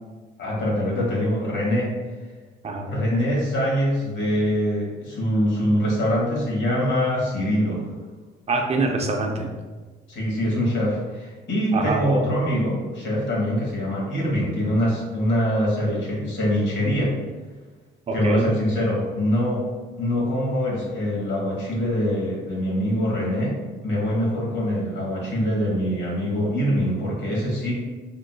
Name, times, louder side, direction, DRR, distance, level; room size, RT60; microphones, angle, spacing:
voice 1, 0.4-1.9 2.9-7.8 10.1-17.1 18.1-19.6 20.0-23.6 23.8-27.7, equal, 65° left, -4 dB, 1.4 m, -24 dB
voice 2, 8.5-9.5 11.7-12.3 18.1-18.5, right 3 dB, 30° right, 3 dB, 0.5 m, -25 dB
3.7 x 2.4 x 2.3 m, 1.3 s
cardioid pair, 90°, 20 cm